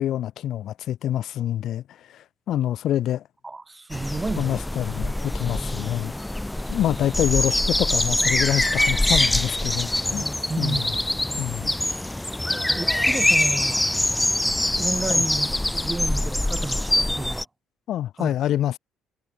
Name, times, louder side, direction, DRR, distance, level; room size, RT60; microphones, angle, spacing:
voice 1, 0.0-3.2 4.4-6.1 6.7-10.2 10.6-10.8 11.4-11.7 15.1-15.2 17.9-18.8, left 12 dB, 65° left, 3.3 m, -26 dB
voice 2, 3.4-4.6 10.5-11.0 12.7-13.9 14.8-17.5 18.2-18.4, right 3 dB, 20° right, 3.2 m, -31 dB
sound 1, 3.9-17.4, left 1 dB, 10° left, 1.7 m, -24 dB
hypercardioid pair, 55°, 0 cm